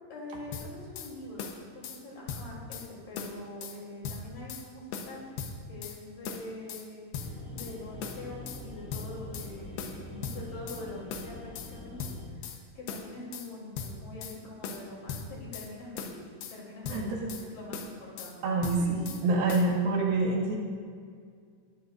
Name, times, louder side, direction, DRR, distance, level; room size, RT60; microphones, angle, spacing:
voice 1, 0.0-5.3 5.7-16.1 16.5-18.4 18.8-19.1, left 1 dB, 60° left, -3 dB, 4.9 m, -44 dB
sound 1, 0.5-1.1 1.4-2.0 2.3-2.9 3.2-3.8 4.0-4.7 4.9-6.0 6.3-6.9 7.1-7.7 8.0-8.6 8.9-9.5 9.8-10.8 11.1-11.7 12.0-12.6 12.9-13.5 13.8-14.4 14.6-15.7 16.0-16.6 16.9-17.5 17.7-18.3 18.6-19.2 19.5-19.7, left 6 dB, 80° left, 3.1 m, -39 dB
sound 2, 7.2-12.3, left 1 dB, 10° left, 0.9 m, -45 dB
voice 2, 16.9-17.3 18.4-20.6, right 3 dB, 70° right, -2 dB, 3.4 m, -27 dB
20.5 x 14.5 x 2.6 m, 2.1 s
omnidirectional pair, 4.5 m